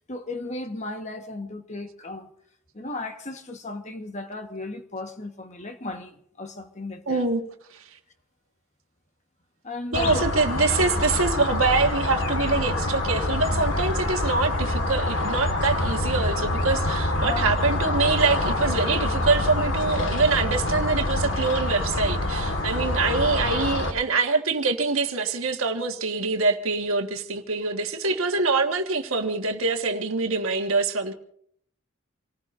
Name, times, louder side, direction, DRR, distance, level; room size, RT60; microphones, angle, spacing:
voice 1, 0.0-2.3 2.7-7.3 9.6-10.2 17.2-17.5, left 2 dB, 35° left, 1.3 m, -35 dB
voice 2, 7.1-7.5 7.7-7.8 9.9-31.1, right 3 dB, 80° right, 1.5 m, -25 dB
sound 1, 9.9-23.9, left 1 dB, 60° left, 1.7 m, -26 dB
27.5 x 19.0 x 2.6 m
head